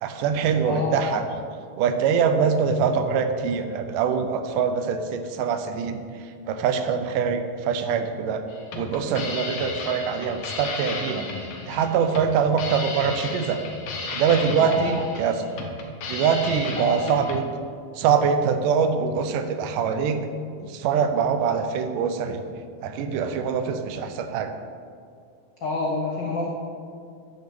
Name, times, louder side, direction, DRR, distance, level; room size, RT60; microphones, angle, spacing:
voice 1, 0.0-1.2 1.8-6.0 6.5-8.4 8.7-11.3 11.7-13.6 14.1-15.3 16.1-17.5 18.0-20.3 20.6-22.4 22.8-24.5, right 6 dB, 85° right, 8 dB, 2.3 m, -24 dB
voice 2, 0.6-1.0 14.6-14.9 16.8-17.2 25.6-26.5, left 3 dB, 90° left, -2 dB, 1.0 m, -28 dB
sound 1, 8.5-17.4, left 4 dB, 65° left, 2.2 m, -34 dB
10.0 x 6.6 x 6.9 m, 2.3 s
omnidirectional pair, 3.7 m